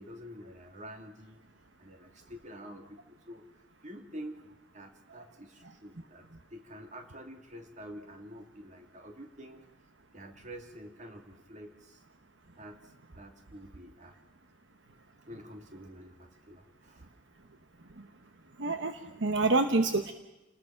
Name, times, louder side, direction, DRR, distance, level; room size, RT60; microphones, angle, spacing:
voice 1, 0.0-1.4 1.8-3.4 3.8-4.5 4.7-9.6 10.1-12.0 12.6-14.2 15.3-17.1, equal, 40° right, 4 dB, 2.6 m, -48 dB
voice 2, 18.6-20.1, right 3 dB, 65° right, 7 dB, 1.1 m, -27 dB
29.0 x 20.0 x 5.9 m, 0.99 s
head